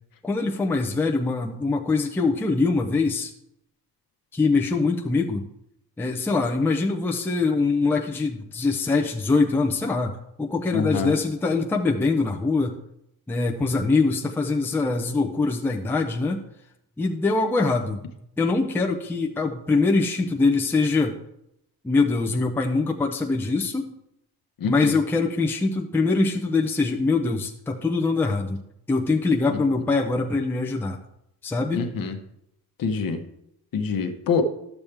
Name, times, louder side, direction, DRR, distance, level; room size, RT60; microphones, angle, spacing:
voice 1, 0.2-3.3 4.3-5.5 6.0-10.1 10.4-12.8 13.3-16.4 17.0-18.0 18.4-21.2 21.8-23.9 24.6-28.6 28.9-31.0 31.4-31.8, left 3 dB, 5° left, 1 dB, 0.5 m, -23 dB
voice 2, 10.7-11.1 24.6-24.9 31.7-32.1 32.8-33.2 33.7-34.4, left 5 dB, 55° left, 7 dB, 1.0 m, -25 dB
12.0 x 7.1 x 3.4 m, 0.79 s
wide cardioid pair, 175°, 40 cm